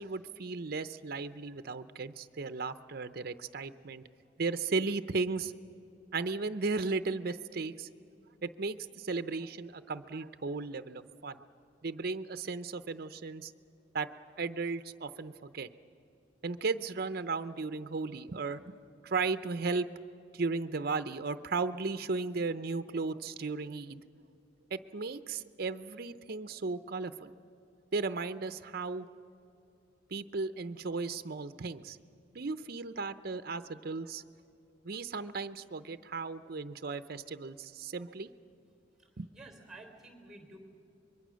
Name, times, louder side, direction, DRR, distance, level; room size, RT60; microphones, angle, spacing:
voice 1, 0.0-4.0 4.4-5.5 6.1-7.9 8.4-11.4 11.8-13.5 13.9-14.1 14.4-15.7 16.4-18.8 19.0-19.9 20.3-24.0 24.7-27.3 27.9-29.1 30.1-32.0 32.3-34.2 34.8-38.3 39.2-39.3, right 4 dB, 55° right, 11 dB, 0.7 m, -35 dB
voice 2, 39.0-40.6, right 2 dB, ahead, 4 dB, 3.5 m, -52 dB
25.5 x 22.0 x 6.3 m, 2.6 s
head